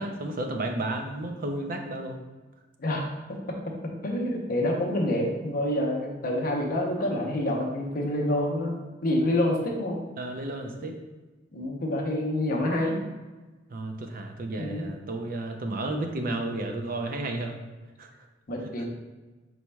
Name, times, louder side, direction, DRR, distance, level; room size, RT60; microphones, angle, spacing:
voice 1, 0.0-2.2 10.2-11.0 13.7-17.6 18.0-18.1, right 2 dB, 50° right, 4 dB, 0.5 m, -32 dB
voice 2, 2.8-8.8 9.0-10.0 11.5-13.0 14.6-14.9 18.5-18.9, left 1 dB, 50° left, 0 dB, 0.7 m, -27 dB
4.5 x 4.1 x 2.2 m, 1.2 s
head